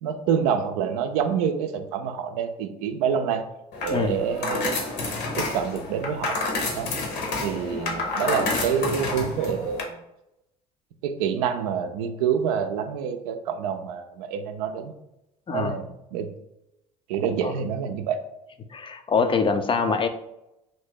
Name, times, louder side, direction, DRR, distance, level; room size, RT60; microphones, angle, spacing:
voice 1, 0.0-3.4 3.8-4.8 5.4-6.4 6.7-6.9 7.4-9.9 11.0-14.9 15.5-16.3 17.1-18.2, right 7 dB, 75° right, 7 dB, 0.4 m, -27 dB
sound 1, 3.7-9.8, left 3 dB, 65° left, 0.9 m, -29 dB
voice 2, 18.7-20.1, left 5 dB, 25° left, 8 dB, 0.4 m, -24 dB
2.7 x 2.6 x 3.5 m, 0.87 s
hypercardioid pair, 60°, 19 cm